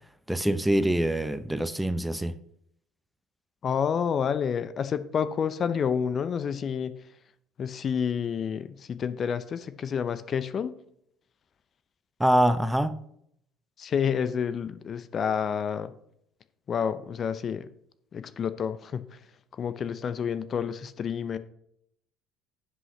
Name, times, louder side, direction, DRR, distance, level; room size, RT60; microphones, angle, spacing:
voice 1, 0.3-2.4 12.2-13.0, right 1 dB, 5° right, 0.7 m, -24 dB
voice 2, 3.6-6.9 7.6-10.7 13.8-15.9 16.7-17.7 18.1-19.0 19.5-21.4, left 7 dB, 40° left, 0.7 m, -29 dB
16.5 x 5.5 x 3.2 m
hypercardioid pair, 60°, 0 cm